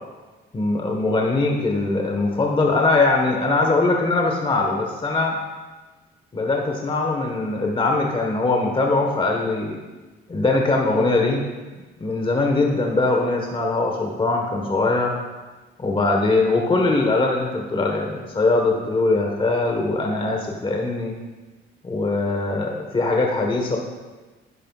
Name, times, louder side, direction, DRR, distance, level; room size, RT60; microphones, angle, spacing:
voice 1, 0.5-5.4 6.3-9.8 10.3-11.4 12.0-15.1 15.8-21.1 21.8-23.8, left 3 dB, 25° left, 1 dB, 1.4 m, -21 dB
11.0 x 10.5 x 2.4 m, 1.2 s
cardioid pair, 90°, 20 cm